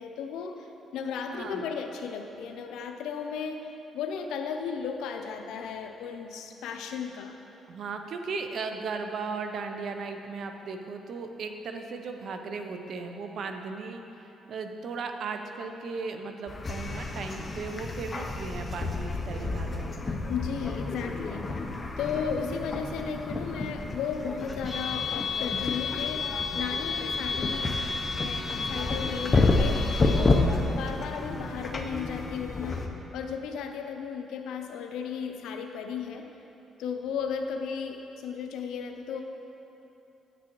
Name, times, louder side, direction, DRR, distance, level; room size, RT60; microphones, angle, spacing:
voice 1, 0.0-7.4 20.3-21.5 22.0-27.8 28.1-32.8 33.1-36.2 36.8-39.2, left 6 dB, 85° left, 5 dB, 0.5 m, -35 dB
voice 2, 1.3-1.6 7.7-20.0, right 4 dB, 65° right, 6 dB, 0.5 m, -36 dB
sound 1, 16.5-32.9, left 3 dB, 30° left, 0.6 m, -29 dB
9.1 x 6.0 x 3.0 m, 2.9 s
cardioid pair, 90°, 0 cm